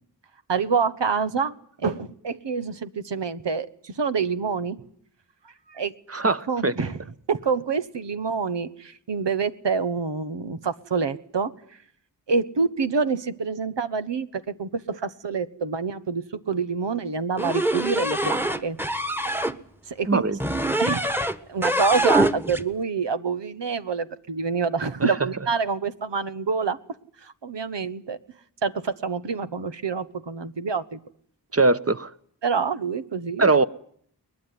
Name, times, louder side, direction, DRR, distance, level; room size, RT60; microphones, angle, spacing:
voice 1, 0.5-4.8 5.7-5.9 6.2-7.0 7.3-11.5 12.3-18.8 19.9-20.2 20.8-21.1 21.5-26.8 27.2-28.2 28.6-31.0 31.6-31.7 32.4-33.5, right 5 dB, 90° right, 12 dB, 1.3 m, -27 dB
voice 2, 6.1-6.9 20.1-20.4 25.0-25.3 31.5-32.1 33.4-33.6, right 3 dB, 35° right, 13 dB, 1.2 m, -21 dB
sound 1, 17.4-19.6 20.4-21.4 21.6-22.6, right 1 dB, 5° right, 1.5 m, -24 dB
22.0 x 20.5 x 9.6 m, 0.63 s
cardioid pair, 45°, 42 cm